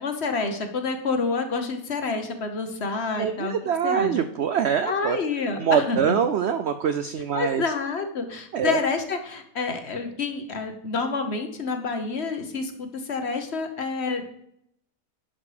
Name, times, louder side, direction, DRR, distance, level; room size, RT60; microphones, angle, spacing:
voice 1, 0.0-3.5 3.8-4.1 4.9-6.1 7.3-14.3, left 4 dB, 50° left, 7 dB, 1.1 m, -28 dB
voice 2, 3.2-5.2 5.6-7.6 8.5-8.8, right 8 dB, 70° right, 10 dB, 0.6 m, -24 dB
11.0 x 5.2 x 4.9 m, 0.72 s
omnidirectional pair, 1.6 m